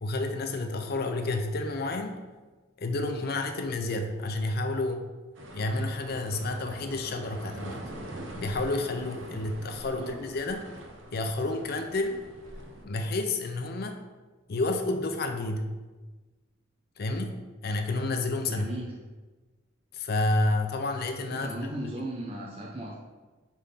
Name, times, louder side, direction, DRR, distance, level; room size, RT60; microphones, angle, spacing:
voice 1, 0.0-2.2 2.8-5.1 5.5-7.8 8.3-10.7 11.1-12.2 12.8-14.0 14.5-15.7 17.0-18.7 19.9-21.5 21.9-22.0, left 2 dB, 45° left, 5 dB, 0.4 m, -30 dB
sound 1, 5.3-12.9, right 1 dB, 65° right, 0.7 m, -43 dB
voice 2, 18.5-18.9 21.3-23.0, right 1 dB, 25° right, -2 dB, 0.5 m, -36 dB
5.1 x 3.5 x 5.6 m, 1.3 s
head